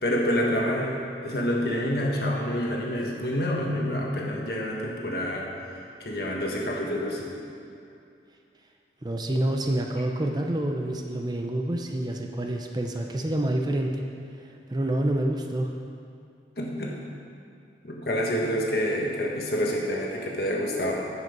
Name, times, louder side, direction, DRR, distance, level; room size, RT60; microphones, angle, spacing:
voice 1, 0.0-5.5 6.0-7.3 16.6-17.0 17.8-21.0, equal, 60° left, -1 dB, 1.5 m, -27 dB
voice 2, 9.0-14.0 14.7-15.7, right 1 dB, 25° right, 2 dB, 0.6 m, -27 dB
9.6 x 8.0 x 5.3 m, 2.5 s
head